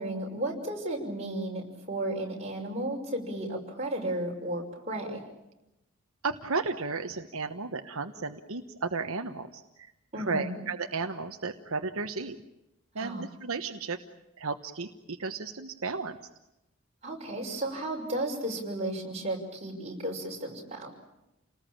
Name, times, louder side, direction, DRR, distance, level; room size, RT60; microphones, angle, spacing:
voice 1, 0.0-5.2 10.1-10.6 13.0-13.2 17.0-20.9, right 1 dB, 30° right, -1 dB, 5.9 m, -34 dB
voice 2, 6.2-9.9 10.1-12.4 12.9-14.0 14.4-16.2, right 4 dB, 70° right, 5 dB, 1.2 m, -34 dB
29.5 x 19.5 x 8.8 m, 0.93 s
head